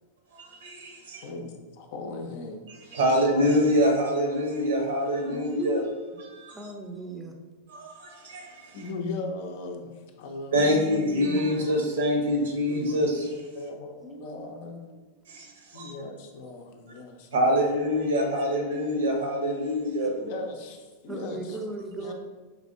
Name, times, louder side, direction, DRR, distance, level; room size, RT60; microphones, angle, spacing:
voice 1, 0.3-1.3 2.7-5.8 6.2-6.7 7.7-8.8 10.5-13.4 15.3-15.9 17.3-20.1, equal, 60° right, 1 dB, 0.8 m, -25 dB
voice 2, 1.2-2.6 3.4-3.6 8.7-11.0 11.5-11.6 12.7-13.0 13.6-14.8 15.7-17.6 20.2-21.6 22.0-22.1, left 3 dB, 50° left, 4 dB, 0.5 m, -38 dB
voice 3, 5.3-6.0 6.5-7.3 10.6-11.6 14.0-14.3 20.0-20.3 21.1-22.1, right 2 dB, 15° right, 3 dB, 0.6 m, -37 dB
4.9 x 3.3 x 2.5 m, 1.3 s
figure-of-eight pair, 90°, 0 cm